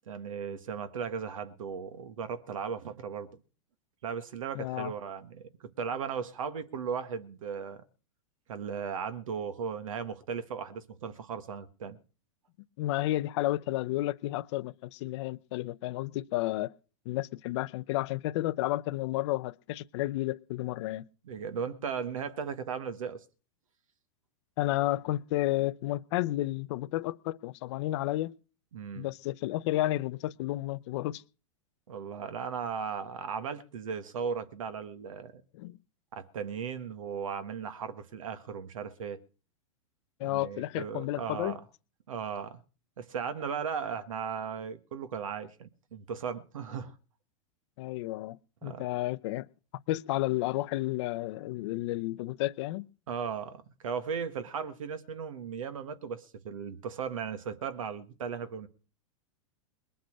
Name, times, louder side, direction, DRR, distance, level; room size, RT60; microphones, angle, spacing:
voice 1, 0.1-3.3 4.0-5.5 5.8-7.8 8.5-12.0 21.2-23.2 28.7-29.1 31.9-35.4 36.1-39.2 40.2-41.6 42.1-42.6 43.0-46.9 48.6-48.8 53.1-58.7, right 6 dB, 80° right, 1.7 m, -36 dB
voice 2, 4.5-4.9 12.8-16.7 17.1-21.1 24.6-28.4 29.0-31.2 35.5-35.8 40.2-41.6 47.8-49.5 49.9-52.9, left 16 dB, 60° left, 0.7 m, -32 dB
21.0 x 7.9 x 6.4 m
hypercardioid pair, 110°, 17 cm